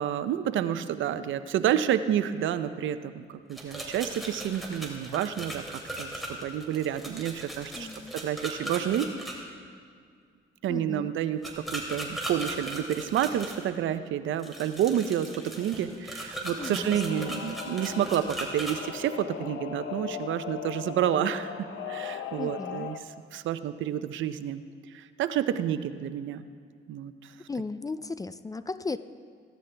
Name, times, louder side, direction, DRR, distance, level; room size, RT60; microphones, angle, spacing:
voice 1, 0.0-9.1 10.6-23.0 23.3-24.6 24.9-26.4 26.9-27.3, right 10 dB, 75° right, 12 dB, 0.6 m, -29 dB
sound 1, 3.5-9.3 11.4-13.6 14.4-18.8, right 1 dB, ahead, 3.0 m, -38 dB
voice 2, 7.8-8.1 10.7-11.1 16.6-17.5 22.4-22.9 27.5-29.0, left 3 dB, 20° left, 14 dB, 0.4 m, -36 dB
Singing / Musical instrument, 16.6-23.0, left 8 dB, 75° left, 0.8 m, -39 dB
16.5 x 13.5 x 3.4 m, 2.2 s
cardioid pair, 90°, 20 cm